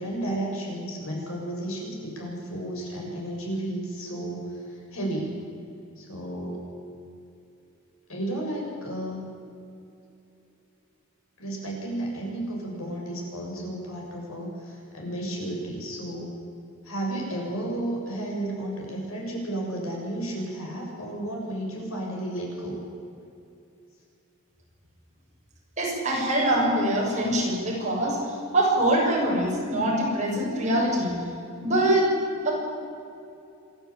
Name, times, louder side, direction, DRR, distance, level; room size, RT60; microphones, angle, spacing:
voice 1, 0.0-5.4 6.0-6.6 8.1-9.2 11.4-16.3 16.8-22.8, right 1 dB, 90° left, -2 dB, 7.3 m, -32 dB
voice 2, 25.8-31.1 31.6-32.1 32.4-32.5, right 1 dB, 35° right, -3 dB, 6.7 m, -24 dB
27.0 x 12.5 x 8.7 m, 2.7 s
head